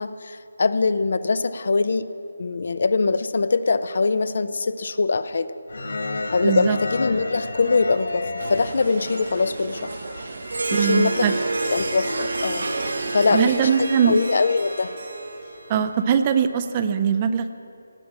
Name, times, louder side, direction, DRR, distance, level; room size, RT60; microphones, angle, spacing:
voice 1, 0.0-2.1 2.4-5.5 6.3-9.9 10.7-11.3 11.7-12.7 13.1-14.9, left 4 dB, 55° left, 14 dB, 0.5 m, -22 dB
sound 1, 5.7-13.0, left 2 dB, 80° left, 1.2 m, -34 dB
voice 2, 6.4-6.8 10.7-11.3 13.3-14.2 15.7-17.5, right 7 dB, 20° right, 9 dB, 0.4 m, -21 dB
sound 2, 8.4-13.6, right 4 dB, 55° right, 0.8 m, -35 dB
Harp, 10.4-16.2, right 2 dB, 90° right, 2.8 m, -29 dB
17.5 x 8.6 x 7.3 m, 2.7 s
hypercardioid pair, 170°, 0 cm